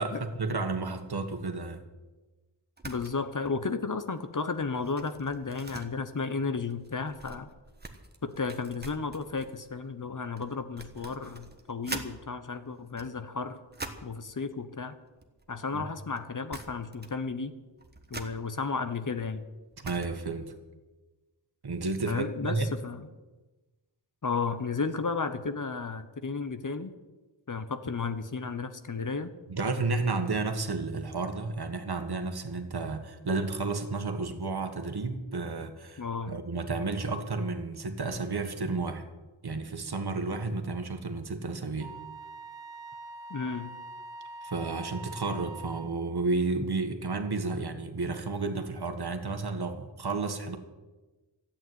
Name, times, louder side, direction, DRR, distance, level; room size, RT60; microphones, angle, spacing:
voice 1, 0.0-1.8 15.7-15.8 19.8-20.5 21.6-22.7 29.5-39.0 39.4-41.9 44.4-50.6, right 3 dB, 60° right, 6 dB, 1.7 m, -32 dB
voice 2, 2.8-7.5 8.2-13.6 14.0-15.0 15.5-17.5 18.1-19.4 22.0-22.6 22.8-23.0 24.2-26.9 27.5-29.3 36.0-36.3 43.3-43.7, left 4 dB, 45° left, 10 dB, 1.1 m, -33 dB
sound 1, 2.8-3.2 3.4-3.7 4.1-12.1 12.8-14.2 15.1-15.9 16.2-16.3 16.5-17.3 17.5-20.4, right 2 dB, 20° right, 1.4 m, -45 dB
Wind instrument woodwind instrument, 41.8-46.0, right 2 dB, 80° right, 0.9 m, -44 dB
13.5 x 8.8 x 9.4 m, 1.2 s
wide cardioid pair, 90°, 43 cm